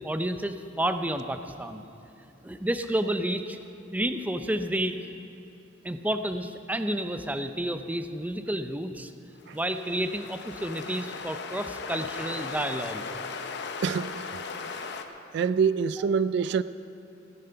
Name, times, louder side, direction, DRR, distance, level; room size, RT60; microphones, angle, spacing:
voice 1, 0.0-1.8 2.4-3.6 3.9-5.0 5.8-9.1 9.5-13.0, right 1 dB, 10° right, 8 dB, 0.5 m, -30 dB
sound 1, 9.4-15.0, left 4 dB, 60° left, 0.8 m, -37 dB
voice 2, 13.8-14.4 15.3-16.6, right 6 dB, 60° right, 15 dB, 0.3 m, -26 dB
16.5 x 10.5 x 5.7 m, 2.7 s
head